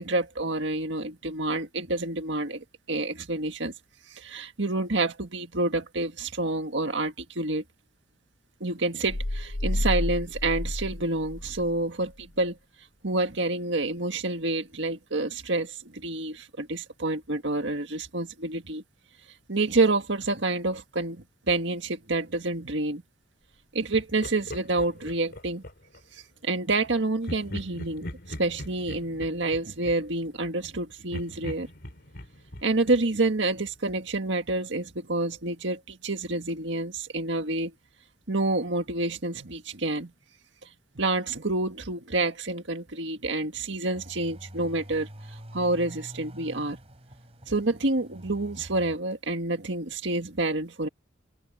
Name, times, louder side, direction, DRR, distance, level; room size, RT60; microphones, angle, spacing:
voice 1, 0.0-3.7 4.1-7.6 8.6-12.6 13.0-18.8 19.5-23.0 23.7-25.6 26.4-31.7 32.6-37.7 38.3-40.1 41.0-45.1 45.5-46.8 47.5-50.9, right 2 dB, 65° right, 1.9 m, -28 dB
sound 1, 9.1-11.8, left 1 dB, 75° left, 1.3 m, -30 dB
Laughter, 23.9-26.1 27.2-30.7 31.1-33.9, left 1 dB, 55° left, 3.6 m, -41 dB
sound 2, 43.9-49.0, equal, 30° right, 5.1 m, -46 dB
open air
head